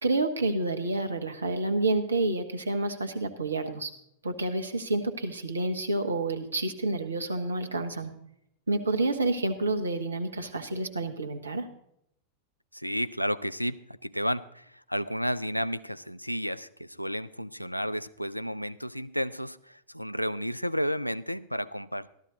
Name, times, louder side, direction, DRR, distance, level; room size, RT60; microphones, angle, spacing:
voice 1, 0.0-3.9 4.2-8.1 8.7-11.7, right 2 dB, 75° right, 7 dB, 1.2 m, -29 dB
voice 2, 12.7-22.1, equal, 90° left, 15 dB, 0.4 m, -32 dB
14.0 x 12.5 x 3.9 m, 0.73 s
figure-of-eight pair, 90°, 0 cm